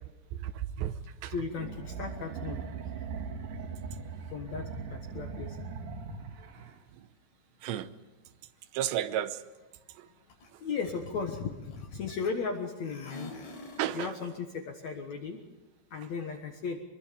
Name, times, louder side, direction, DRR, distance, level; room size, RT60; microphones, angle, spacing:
voice 1, 0.3-1.3 6.6-7.1 7.6-7.9 8.7-9.4 9.9-10.1 10.5-10.6 13.8-14.1, right 11 dB, 85° right, 3.0 m, -34 dB
voice 2, 1.3-2.6 4.3-5.6 10.6-13.4 13.9-15.4 15.9-16.8, left 5 dB, 60° left, 1.9 m, -36 dB
sound 1, 1.5-6.7, right 5 dB, 55° right, 2.7 m, -40 dB
sound 2, 10.3-10.5 10.8-12.6 12.8-14.0, left 2 dB, 80° left, 6.9 m, -46 dB
24.0 x 22.5 x 5.2 m
omnidirectional pair, 5.0 m